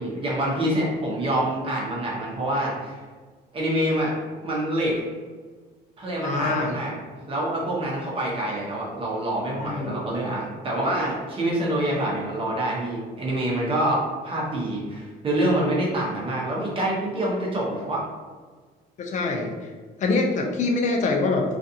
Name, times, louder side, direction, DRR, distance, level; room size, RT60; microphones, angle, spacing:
voice 1, 0.0-3.0 3.5-4.1 4.4-5.0 6.0-7.0 7.3-18.0, right 1 dB, 30° right, -4 dB, 0.9 m, -26 dB
voice 2, 6.2-6.7 9.6-9.9 19.0-19.7 20.0-21.4, left 3 dB, 45° left, 2 dB, 0.5 m, -24 dB
2.5 x 2.4 x 2.7 m, 1.4 s
cardioid pair, 110°, 17 cm